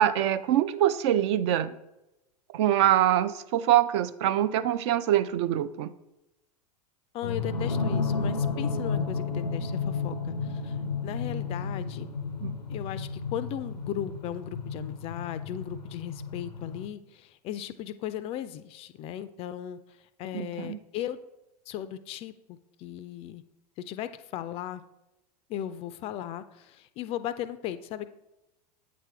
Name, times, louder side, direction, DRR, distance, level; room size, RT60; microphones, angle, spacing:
voice 1, 0.0-1.7 2.5-5.9 12.4-12.6 20.3-20.8, right 11 dB, 45° right, 14 dB, 0.4 m, -24 dB
voice 2, 7.1-10.8 11.0-12.1 12.7-19.8 20.2-21.2 21.7-23.4 23.8-24.8 25.5-28.1, left 11 dB, 30° left, 13 dB, 0.3 m, -37 dB
sound 1, 7.2-16.9, left 4 dB, 85° left, 0.5 m, -32 dB
8.3 x 4.3 x 3.5 m, 0.94 s
figure-of-eight pair, 90°, 21 cm